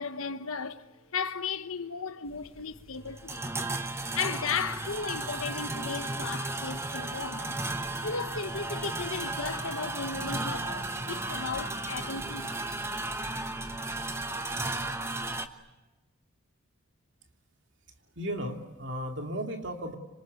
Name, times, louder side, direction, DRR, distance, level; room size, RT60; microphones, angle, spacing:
voice 1, 0.0-3.5 4.1-7.6 8.0-12.6, left 5 dB, 80° left, 1.3 m, -35 dB
sound 1, 2.3-15.5, right 2 dB, 10° right, 1.1 m, -34 dB
voice 2, 18.2-20.0, equal, 55° right, 2.9 m, -35 dB
26.5 x 26.0 x 8.3 m
head